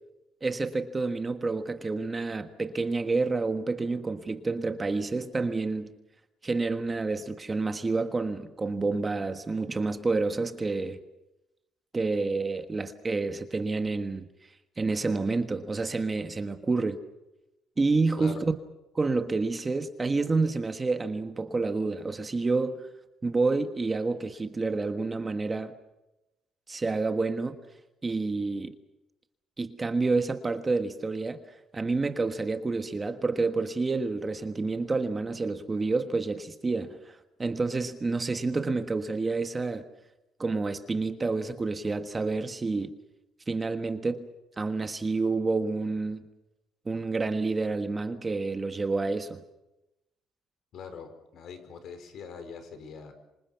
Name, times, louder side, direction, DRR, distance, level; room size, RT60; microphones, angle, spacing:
voice 1, 0.4-5.9 6.4-11.0 11.9-14.3 14.8-17.0 17.8-18.4 18.9-22.9 23.2-25.7 26.7-27.6 28.0-28.7 29.6-31.4 31.7-39.9 40.4-42.9 43.5-44.3 44.6-46.2 46.8-49.4, right 3 dB, 20° right, 1.4 m, -29 dB
voice 2, 50.7-53.1, left 6 dB, 55° left, 5.1 m, -42 dB
26.5 x 26.0 x 5.8 m
cardioid pair, 145°, 0 cm